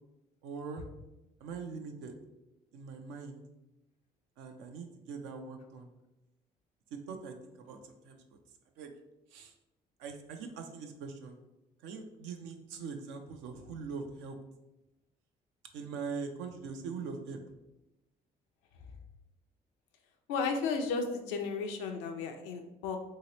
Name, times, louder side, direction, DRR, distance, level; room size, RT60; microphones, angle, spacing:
voice 1, 0.4-0.8 1.4-2.2 2.7-3.4 4.4-5.9 6.9-8.4 8.8-8.9 9.3-9.5 10.0-11.4 11.8-14.4 15.7-17.4, right 5 dB, 85° right, 5 dB, 0.5 m, -42 dB
voice 2, 20.3-23.0, left 4 dB, 85° left, 5 dB, 0.5 m, -34 dB
3.1 x 2.8 x 2.9 m, 0.96 s
supercardioid pair, 60°, 18 cm